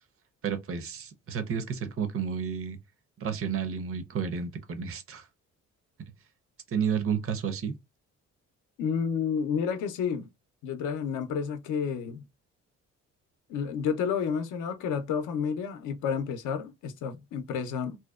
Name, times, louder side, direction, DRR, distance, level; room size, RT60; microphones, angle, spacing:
voice 1, 0.4-2.8 3.2-5.3 6.7-7.7, right 7 dB, 50° right, 0.6 m, -31 dB
voice 2, 8.8-10.3 10.6-12.3 13.5-18.0, left 6 dB, 80° left, 0.5 m, -30 dB
2.7 x 2.1 x 2.2 m
cardioid pair, 90°, 30 cm